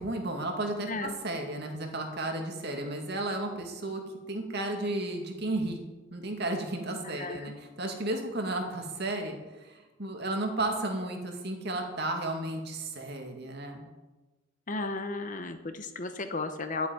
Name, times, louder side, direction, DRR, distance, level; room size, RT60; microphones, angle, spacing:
voice 1, 0.0-4.0 4.3-5.8 6.1-13.8, right 2 dB, 55° right, 3 dB, 2.3 m, -33 dB
voice 2, 7.0-7.5 14.7-16.9, left 3 dB, 40° left, 8 dB, 1.0 m, -34 dB
12.5 x 8.2 x 9.1 m, 1.1 s
head